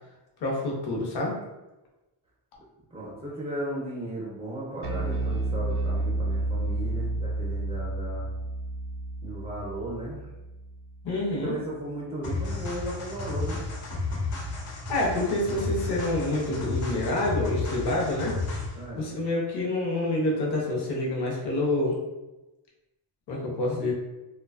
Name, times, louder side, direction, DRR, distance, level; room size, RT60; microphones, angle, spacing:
voice 1, 0.4-1.4 11.0-11.5 14.9-18.4 19.0-22.0 23.3-23.9, left 2 dB, 55° left, -2 dB, 0.8 m, -27 dB
voice 2, 2.9-8.3 9.2-10.2 11.4-13.6 18.7-19.1, right 1 dB, 15° right, -6 dB, 0.4 m, -35 dB
Bass guitar, 4.8-11.3, right 2 dB, 80° right, 0.5 m, -31 dB
sound 1, 12.2-18.8, left 3 dB, 85° left, 0.8 m, -32 dB
2.5 x 2.3 x 2.3 m, 1.0 s
cardioid pair, 145°, 49 cm